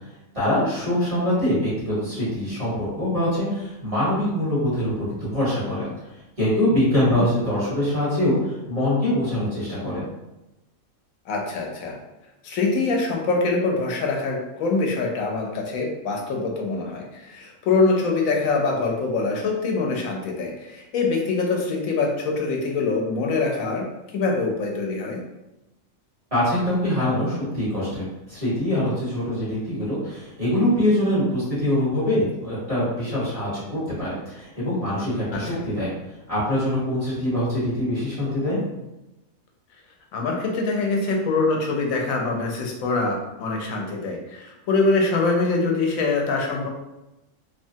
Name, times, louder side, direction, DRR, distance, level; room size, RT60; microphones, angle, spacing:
voice 1, 0.3-5.9 6.4-10.0 26.3-35.9 36.3-38.6, left 1 dB, 25° right, -10 dB, 1.5 m, -24 dB
voice 2, 11.3-12.0 12.4-23.9 24.1-25.2 35.3-35.6 40.1-46.7, left 3 dB, 85° left, 0 dB, 1.0 m, -24 dB
3.0 x 2.2 x 2.7 m, 0.97 s
omnidirectional pair, 1.4 m